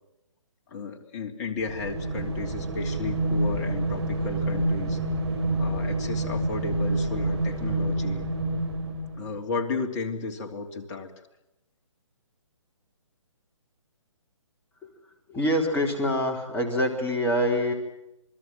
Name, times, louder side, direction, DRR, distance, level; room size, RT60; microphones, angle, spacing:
voice 1, 0.7-5.0 5.6-8.2 9.2-11.1, left 4 dB, 35° left, 4 dB, 3.1 m, -33 dB
sound 1, 1.6-9.3, right 2 dB, 55° right, 5.0 m, -28 dB
voice 2, 15.3-17.7, equal, 10° left, 1 dB, 4.1 m, -25 dB
27.5 x 20.5 x 7.6 m, 0.90 s
figure-of-eight pair, 140°, 17 cm